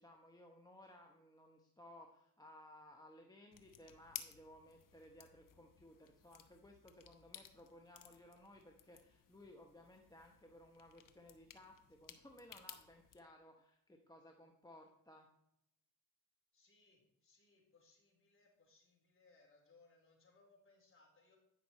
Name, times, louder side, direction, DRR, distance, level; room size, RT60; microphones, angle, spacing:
voice 1, 0.0-15.3, left 1 dB, 10° left, 2 dB, 1.0 m, -60 dB
sound 1, 3.5-13.2, left 9 dB, 50° left, 0.9 m, -57 dB
voice 2, 16.5-21.4, left 3 dB, 30° left, -1 dB, 3.5 m, -69 dB
9.9 x 5.9 x 4.2 m, 0.79 s
supercardioid pair, 75°, 42 cm